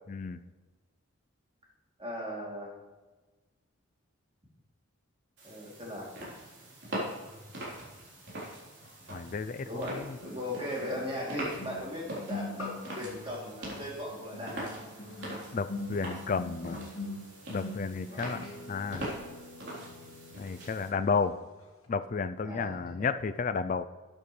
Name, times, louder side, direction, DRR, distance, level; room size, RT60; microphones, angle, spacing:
voice 1, 0.1-0.4 9.1-10.2 15.5-16.8 17.5-19.1 20.4-21.4 21.9-23.8, left 5 dB, 40° left, 10 dB, 0.3 m, -32 dB
voice 2, 2.0-2.7 5.4-6.1 9.6-14.8 18.0-18.5 22.4-22.8, left 1 dB, 25° right, -3 dB, 3.0 m, -38 dB
sound 1, 5.4-20.9, right 1 dB, 55° right, 3.8 m, -42 dB
sound 2, 8.8-8.9 10.2-21.3 21.6-21.8, left 2 dB, 75° left, 2.1 m, -44 dB
12.5 x 9.1 x 3.3 m, 1.3 s
head